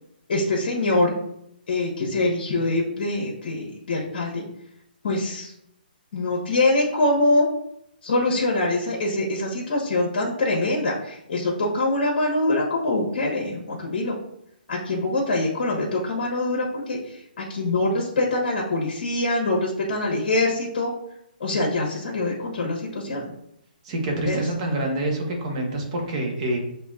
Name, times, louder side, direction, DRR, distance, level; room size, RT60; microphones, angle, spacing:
voice 1, 0.3-1.1 1.7-4.4 5.0-5.5 6.1-7.5 8.0-14.1 14.7-20.9 21.4-23.3 24.3-24.4, left 2 dB, 55° left, -3 dB, 1.2 m, -24 dB
voice 2, 23.8-26.6, right 1 dB, 35° right, 1 dB, 1.1 m, -26 dB
7.6 x 2.8 x 2.4 m, 0.78 s
hypercardioid pair, 155°, 5 cm